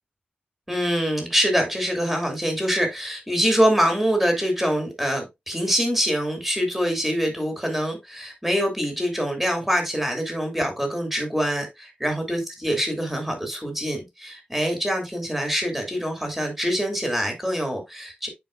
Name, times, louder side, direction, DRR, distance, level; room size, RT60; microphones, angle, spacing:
voice 1, 0.7-18.3, equal, 5° right, 3 dB, 2.9 m, -24 dB
10.0 x 4.6 x 2.6 m, 0.20 s
wide cardioid pair, 105°, 4 cm